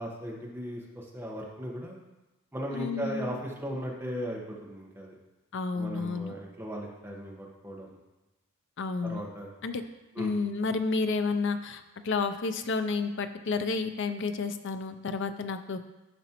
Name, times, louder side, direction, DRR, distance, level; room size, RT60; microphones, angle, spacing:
voice 1, 0.0-2.0 2.5-5.1 5.7-7.9 9.0-9.5 10.1-10.3, equal, 10° right, -2 dB, 1.1 m, -37 dB
voice 2, 2.7-3.4 5.5-6.3 8.8-9.2 9.6-9.8 10.2-15.8, left 4 dB, 55° left, 9 dB, 0.5 m, -31 dB
12.0 x 5.1 x 3.0 m, 1.0 s
head